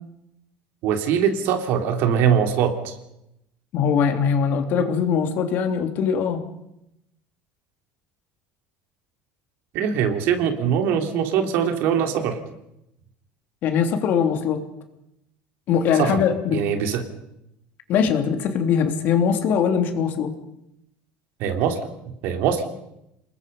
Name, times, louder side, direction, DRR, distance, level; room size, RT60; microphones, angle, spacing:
voice 1, 0.8-3.0 9.7-12.4 16.0-16.2 16.5-17.0 21.4-22.6, right 8 dB, 65° right, 5 dB, 3.3 m, -22 dB
voice 2, 3.7-6.4 13.6-14.6 15.7-16.6 17.9-20.3, left 7 dB, 55° left, 6 dB, 3.2 m, -21 dB
28.0 x 20.5 x 5.5 m, 0.82 s
cardioid pair, 130°, 4 cm